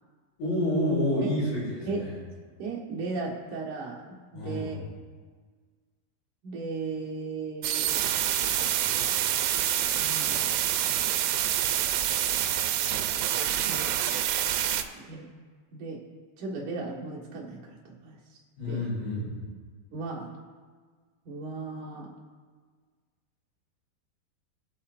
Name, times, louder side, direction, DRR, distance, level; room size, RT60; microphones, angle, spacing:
voice 1, 0.4-2.1 4.3-4.8 18.6-19.3, left 1 dB, 85° left, -7 dB, 6.6 m, -28 dB
voice 2, 2.6-4.0 4.3-4.8 6.4-8.0 10.0-10.5 13.5-13.9 15.1-15.2 15.7-16.0 16.4-18.2 18.7-18.9 19.9-20.3 21.3-22.1, right 3 dB, 60° right, -4 dB, 2.3 m, -36 dB
sound 1, 7.6-14.8, right 11 dB, 80° right, 3.0 m, -27 dB
21.5 x 8.4 x 2.5 m, 1.6 s
omnidirectional pair, 5.4 m